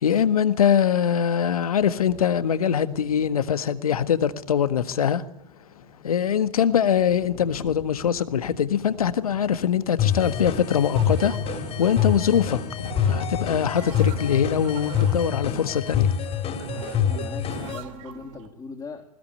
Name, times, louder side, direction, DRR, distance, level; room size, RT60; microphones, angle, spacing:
voice 1, 0.0-5.2 6.0-11.3 11.8-16.1, left 8 dB, 80° left, 1.6 m, -23 dB
sound 1, 1.7-11.4, left 6 dB, 60° left, 3.4 m, -46 dB
sound 2, 10.0-17.8, left 9 dB, 35° left, 3.4 m, -26 dB
sound 3, 11.0-18.5, right 9 dB, 60° right, 3.0 m, -39 dB
voice 2, 16.7-19.0, left 4 dB, 15° left, 3.3 m, -40 dB
20.0 x 20.0 x 8.8 m
hypercardioid pair, 100°, 18 cm